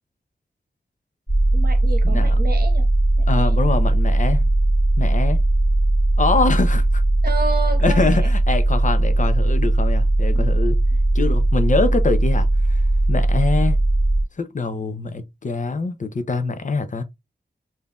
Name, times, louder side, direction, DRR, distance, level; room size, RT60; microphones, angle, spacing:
sound 1, 1.3-14.2, right 1 dB, 15° left, 1.4 m, -18 dB
voice 1, 1.5-2.9 3.3-3.6 7.2-8.3 10.3-10.5, right 4 dB, 60° right, 1.1 m, -30 dB
voice 2, 2.0-2.3 3.3-4.5 5.0-5.4 6.2-7.0 7.8-10.8 11.1-12.8 13.1-13.8 14.4-17.0, left 3 dB, 45° left, 0.5 m, -24 dB
5.2 x 2.6 x 2.3 m
wide cardioid pair, 120°, 18 cm